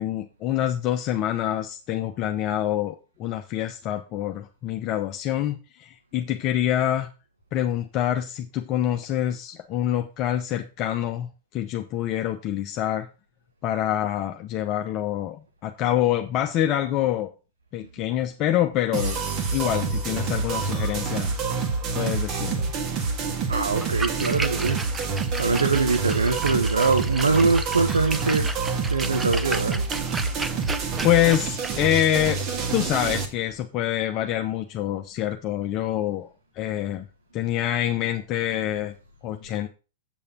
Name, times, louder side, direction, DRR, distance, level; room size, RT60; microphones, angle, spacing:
voice 1, 0.0-7.1 7.5-13.1 13.6-17.3 17.7-19.2 19.5-21.4 21.9-22.7 31.0-32.4 32.7-36.3 36.6-37.1 37.3-38.9 39.2-39.7, left 12 dB, 40° left, 4 dB, 0.9 m, -26 dB
sound 1, 18.9-33.2, right 4 dB, 40° right, 1.9 m, -27 dB
voice 2, 23.5-28.5 28.9-29.8, right 4 dB, 85° right, 6 dB, 1.1 m, -23 dB
Splash splatter, 23.7-33.6, right 3 dB, 15° right, 0.7 m, -35 dB
8.0 x 6.9 x 4.4 m, 0.32 s
figure-of-eight pair, 100°, 0 cm